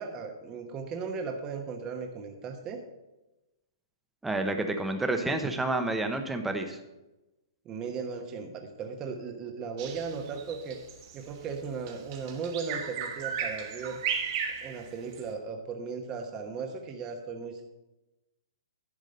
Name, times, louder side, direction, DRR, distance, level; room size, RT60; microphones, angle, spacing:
voice 1, 0.0-2.8 7.6-10.8 11.1-14.0 14.6-17.6, right 5 dB, 25° right, 4 dB, 1.1 m, -37 dB
voice 2, 4.2-6.8, right 2 dB, 5° right, 5 dB, 0.9 m, -29 dB
Bird vocalization bird call bird song, 9.8-15.3, right 7 dB, 45° right, 1.8 m, -35 dB
11.0 x 4.9 x 6.6 m, 1.0 s
hypercardioid pair, 145°, 2 cm